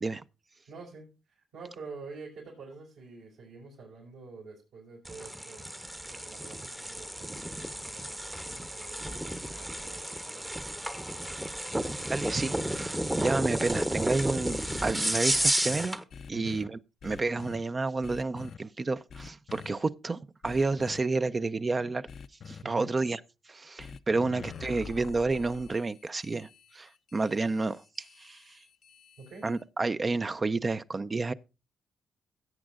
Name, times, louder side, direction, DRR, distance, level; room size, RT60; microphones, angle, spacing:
voice 1, 0.7-1.1 1.3-10.9 16.3-16.6 22.6-22.9 29.2-29.5, right 4 dB, 80° right, 5.2 m, -48 dB
sound 1, 5.0-16.0, right 1 dB, 10° right, 0.9 m, -32 dB
voice 2, 12.1-16.0 16.3-22.0 22.5-23.2 23.5-28.6 29.4-31.3, right 3 dB, 30° right, 0.6 m, -30 dB
sound 2, 14.1-16.7 17.0-17.6 18.0-18.6 19.1-19.7 20.4-21.0 22.1-22.6 23.8-29.6, left 6 dB, 60° left, 0.6 m, -46 dB
16.5 x 8.6 x 2.5 m
cardioid pair, 70°, 0 cm